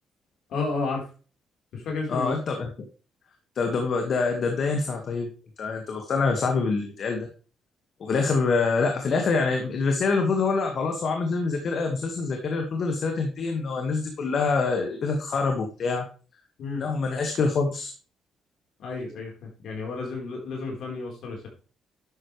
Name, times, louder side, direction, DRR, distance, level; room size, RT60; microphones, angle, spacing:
voice 1, 0.5-1.0 1.7-2.3 16.6-16.8 18.8-21.5, left 3 dB, 75° left, 0 dB, 4.2 m, -31 dB
voice 2, 2.1-2.7 3.6-5.3 5.6-7.3 8.0-16.1 16.8-17.9, left 4 dB, 55° left, 3 dB, 1.8 m, -25 dB
11.5 x 7.9 x 3.3 m, 0.36 s
cardioid pair, 90°, 0 cm